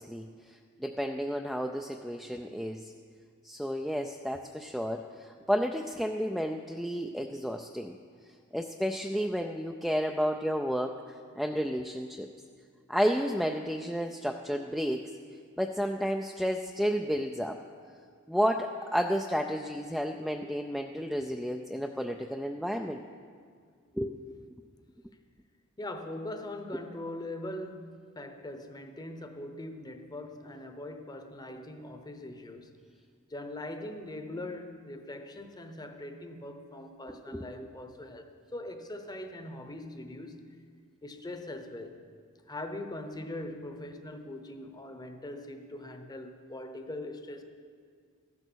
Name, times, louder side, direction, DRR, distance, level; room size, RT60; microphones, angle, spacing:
voice 1, 0.0-2.9 3.4-8.0 8.5-12.3 12.9-15.1 15.6-17.6 18.3-23.0 23.9-24.2 37.3-37.7, equal, ahead, 2 dB, 0.4 m, -31 dB
voice 2, 25.8-32.8 33.3-40.6 41.0-42.0 42.5-47.4, left 1 dB, 20° left, 7 dB, 0.9 m, -41 dB
14.5 x 11.0 x 6.3 m, 2.1 s
head